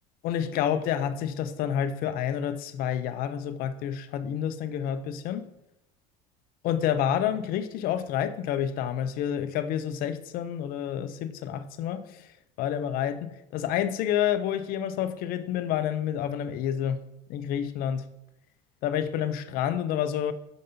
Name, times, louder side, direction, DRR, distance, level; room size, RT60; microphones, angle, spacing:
voice 1, 0.2-5.4 6.6-12.3 12.6-17.0 17.3-18.1 18.8-20.3, left 9 dB, 55° left, 0.5 m, -29 dB
6.7 x 5.2 x 2.7 m
supercardioid pair, 125°, 18 cm